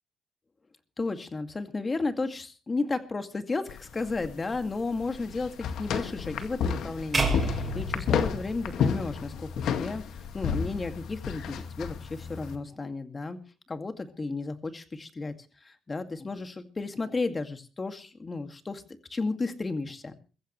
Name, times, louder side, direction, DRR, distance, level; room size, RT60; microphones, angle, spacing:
voice 1, 1.0-13.4 13.7-15.3 15.6-18.8 19.1-20.1, left 3 dB, 30° left, 8 dB, 2.2 m, -33 dB
sound 1, 3.7-12.6, left 7 dB, 75° left, 1.9 m, -32 dB
sound 2, 7.1-9.4, right 2 dB, 30° right, 6.7 m, -30 dB
22.5 x 14.5 x 3.2 m, 0.35 s
cardioid pair, 90°, 0 cm